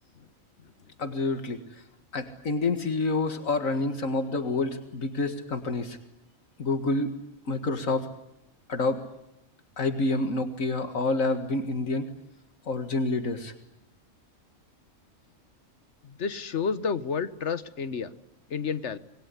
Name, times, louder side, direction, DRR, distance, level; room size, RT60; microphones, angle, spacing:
voice 1, 1.0-1.6 2.1-6.0 6.6-7.1 7.5-8.1 8.7-9.0 9.8-12.1 12.7-13.5, left 2 dB, 75° left, 9 dB, 2.2 m, -28 dB
voice 2, 16.0-18.1 18.5-19.0, left 6 dB, 60° left, 14 dB, 1.5 m, -30 dB
26.5 x 21.0 x 9.8 m, 0.82 s
omnidirectional pair, 1.4 m